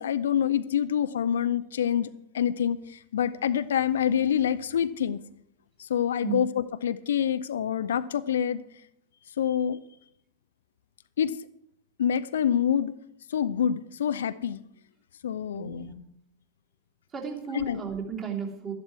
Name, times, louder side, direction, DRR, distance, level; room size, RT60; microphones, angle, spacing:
voice 1, 0.0-5.2 5.8-8.6 9.4-9.8 11.2-11.4 12.0-12.9 13.3-14.6 15.2-15.9 17.5-17.8, left 9 dB, 65° left, 13 dB, 0.5 m, -26 dB
voice 2, 15.5-16.0 17.1-18.7, right 6 dB, 25° right, -2 dB, 3.1 m, -34 dB
13.0 x 11.0 x 4.6 m, 0.72 s
figure-of-eight pair, 90°, 0 cm